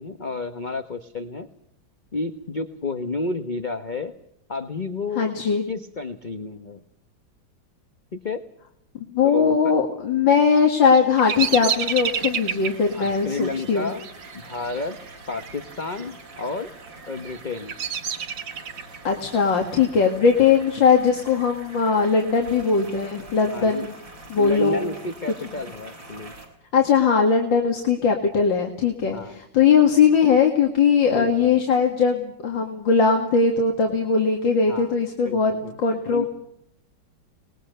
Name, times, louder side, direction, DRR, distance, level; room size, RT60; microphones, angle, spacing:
voice 1, 0.0-1.5 2.1-4.1 4.5-5.3 5.7-6.8 8.1-8.4 9.2-9.8 12.9-14.0 14.5-15.0 15.3-16.7 17.1-17.8 23.4-23.9 24.4-26.3 29.1-29.4 31.1-31.6 34.7-35.0 35.2-35.8 36.1-36.2, left 3 dB, 30° left, 9 dB, 1.0 m, -31 dB
voice 2, 5.2-5.6 9.1-13.9 19.0-23.9 24.3-24.9 26.7-35.5 35.8-36.3, left 6 dB, 85° left, 2 dB, 2.8 m, -20 dB
Bird vocalization bird call bird song, 10.5-15.6 15.8-16.4 17.0-19.0, right 7 dB, 60° right, 1.8 m, -30 dB
sound 1, 11.1-26.5, right 2 dB, 85° right, 6.2 m, -44 dB
25.5 x 20.5 x 6.7 m, 0.74 s
omnidirectional pair, 2.0 m